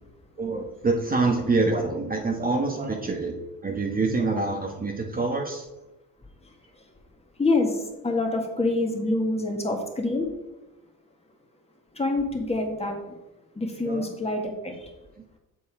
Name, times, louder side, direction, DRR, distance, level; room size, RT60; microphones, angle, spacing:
voice 1, 0.4-5.7 13.8-14.1, right 3 dB, 25° right, 2 dB, 1.1 m, -26 dB
voice 2, 7.4-7.8 8.0-10.3 12.0-13.0 13.6-14.9, left 2 dB, 15° left, 2 dB, 1.7 m, -26 dB
7.3 x 6.8 x 4.8 m, 0.99 s
cardioid pair, 110°, 36 cm